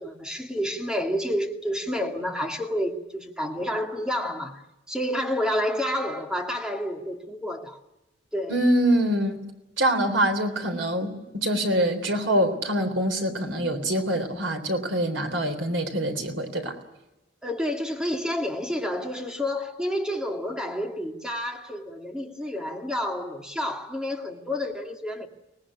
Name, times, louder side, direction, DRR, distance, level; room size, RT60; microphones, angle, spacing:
voice 1, 0.0-7.8 8.3-8.6 17.4-25.3, equal, 5° right, 2.2 m, -29 dB
voice 2, 8.5-9.4 9.8-16.7, right 1 dB, 80° right, 3.7 m, -25 dB
24.5 x 19.0 x 9.9 m
head